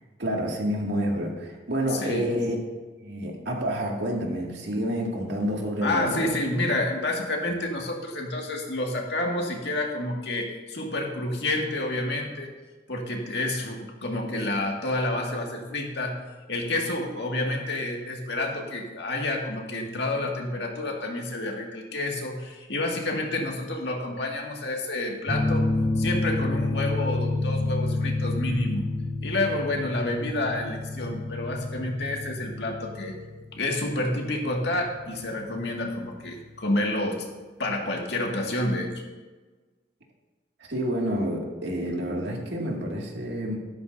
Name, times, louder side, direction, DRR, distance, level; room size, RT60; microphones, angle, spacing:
voice 1, 0.2-2.6 3.0-6.3 40.7-43.6, equal, 75° right, -1 dB, 2.3 m, -28 dB
voice 2, 1.9-2.3 5.8-12.5 12.9-16.2 16.5-25.7 26.0-28.8 29.2-33.1 33.5-37.3 37.6-38.9, left 2 dB, 70° left, 0 dB, 2.0 m, -29 dB
sound 1, 25.3-36.5, left 2 dB, 40° left, 1.6 m, -29 dB
13.0 x 12.5 x 2.7 m, 1.3 s
head